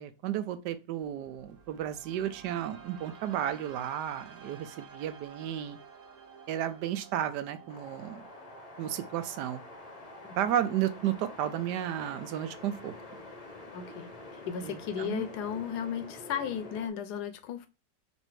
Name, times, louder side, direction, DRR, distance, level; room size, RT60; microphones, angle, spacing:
voice 1, 0.0-5.8 6.5-8.2 8.8-9.6 10.4-12.9 14.6-15.2, right 11 dB, 85° right, 1.2 m, -33 dB
sound 1, 1.0-17.0, right 6 dB, 65° right, 1.4 m, -54 dB
sound 2, 7.7-16.9, left 2 dB, 35° left, 0.6 m, -47 dB
voice 2, 13.7-14.1 14.5-17.7, left 8 dB, 80° left, 1.1 m, -35 dB
4.1 x 2.7 x 4.5 m
omnidirectional pair, 1.8 m